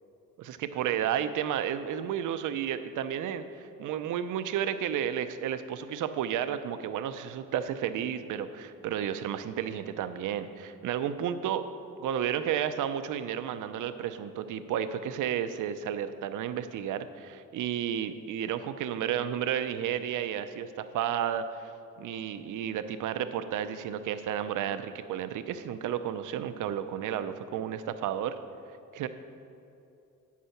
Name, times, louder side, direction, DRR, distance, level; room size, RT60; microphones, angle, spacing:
voice 1, 0.4-11.6 12.0-21.7 22.0-28.3 28.9-29.1, right 9 dB, 80° right, 10 dB, 0.6 m, -32 dB
8.6 x 8.4 x 5.8 m, 2.7 s
cardioid pair, 160°, 31 cm